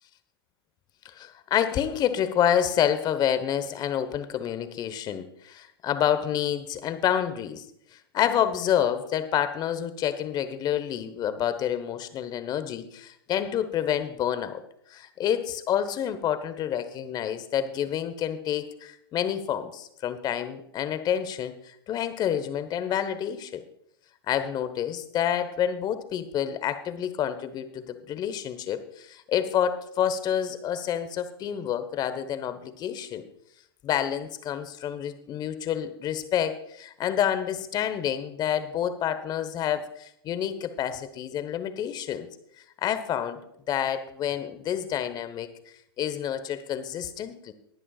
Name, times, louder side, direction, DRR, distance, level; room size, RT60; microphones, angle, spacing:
voice 1, 1.0-7.6 8.1-14.6 14.9-23.6 24.3-33.3 33.8-42.3 42.8-43.4 43.7-45.5 46.0-47.5, left 9 dB, 30° left, 11 dB, 1.2 m, -28 dB
20.0 x 9.9 x 2.4 m, 0.75 s
hypercardioid pair, 110°, 14 cm